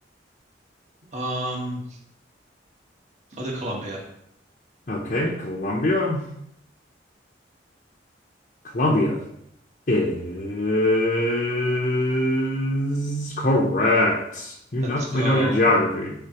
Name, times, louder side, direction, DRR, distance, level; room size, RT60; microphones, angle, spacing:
voice 1, 1.1-1.8 3.4-4.0 14.8-15.6, right 1 dB, 40° right, -3 dB, 1.4 m, -30 dB
voice 2, 4.9-6.2 8.7-9.2 9.9-16.1, left 1 dB, 45° left, -3 dB, 0.8 m, -23 dB
10.0 x 4.3 x 3.0 m, 0.75 s
head